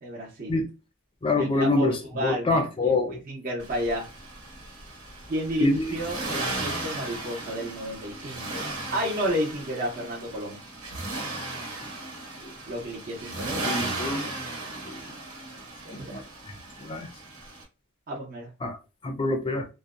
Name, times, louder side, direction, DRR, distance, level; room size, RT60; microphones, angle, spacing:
voice 1, 0.0-0.6 1.4-4.1 5.3-8.6 8.9-10.6 12.7-13.6 16.1-16.2 18.1-18.5, equal, 40° right, -5 dB, 0.7 m, -31 dB
voice 2, 1.2-3.2 5.6-5.8 12.4-12.5 13.6-14.3 14.8-15.0 15.9-16.2 16.8-17.1 18.6-18.8 19.0-19.7, left 2 dB, 25° left, 5 dB, 0.4 m, -26 dB
Accelerating revving vroom, 3.6-17.6, right 2 dB, 70° right, 1.1 m, -36 dB
2.6 x 2.1 x 2.4 m, 0.29 s
head